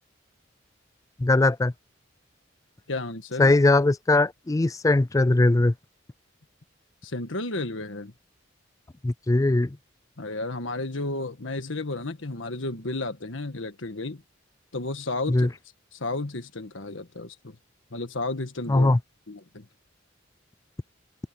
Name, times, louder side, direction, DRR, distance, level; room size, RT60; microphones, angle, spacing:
voice 1, 1.2-1.7 3.4-5.7 9.0-9.7 15.3-15.5 18.7-19.0, left 2 dB, 15° left, 0.4 m, -20 dB
voice 2, 2.9-3.5 7.0-8.1 10.2-14.2 14.7-15.5 15.9-17.5 17.9-18.9 19.3-19.6, left 2 dB, 75° left, 1.6 m, -32 dB
open air
head